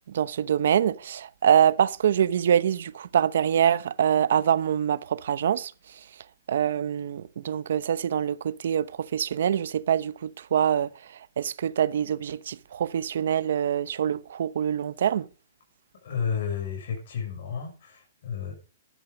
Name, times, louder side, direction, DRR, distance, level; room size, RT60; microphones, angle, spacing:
voice 1, 0.1-5.7 6.5-8.9 9.1-10.9 11.4-15.2, right 9 dB, 70° right, 0.9 m, -24 dB
voice 2, 16.0-18.5, left 7 dB, 60° left, 7.2 m, -32 dB
13.0 x 12.0 x 5.3 m
hypercardioid pair, 165°, 0 cm